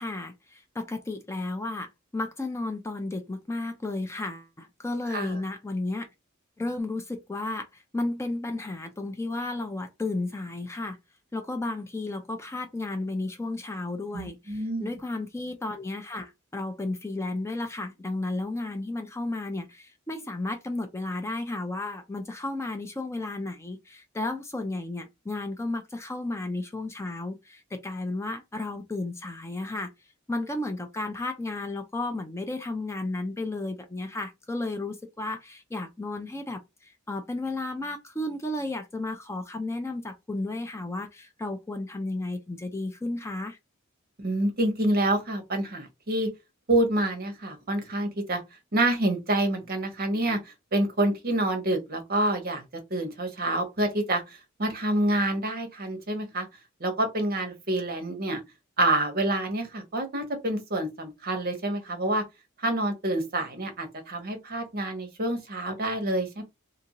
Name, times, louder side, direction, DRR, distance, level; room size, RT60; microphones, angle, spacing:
voice 1, 0.0-6.1 6.6-11.0 11.3-29.9 30.3-43.6, left 2 dB, 15° left, 0.4 m, -33 dB
voice 2, 14.1-14.9 44.2-46.3 46.7-48.4 48.7-52.6 52.9-56.5 56.8-58.4 58.8-62.2 62.6-66.4, right 1 dB, 50° right, 0.9 m, -27 dB
2.7 x 2.5 x 2.9 m
head